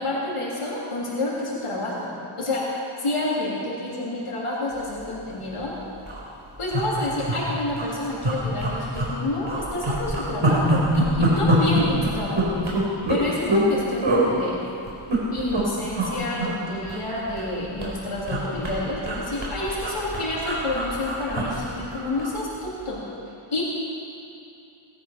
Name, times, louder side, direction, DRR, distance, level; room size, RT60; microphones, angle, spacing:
voice 1, 0.0-2.1 2.4-2.6 3.0-5.7 6.6-12.6 13.1-14.6 15.3-23.0 23.5-23.6, left 2 dB, 85° left, -6 dB, 3.4 m, -29 dB
sound 1, 5.2-5.4 5.7-5.8 6.0-6.2 6.7-7.4 7.7-7.9 8.2-9.2 9.5-13.7 14.0-14.3 14.9-15.6 15.9-16.1 16.4-17.5 17.8-22.4 22.7-22.9, right 1 dB, 70° right, 4.4 m, -24 dB
18.5 x 12.5 x 5.9 m, 2.6 s
wide cardioid pair, 75°, 50 cm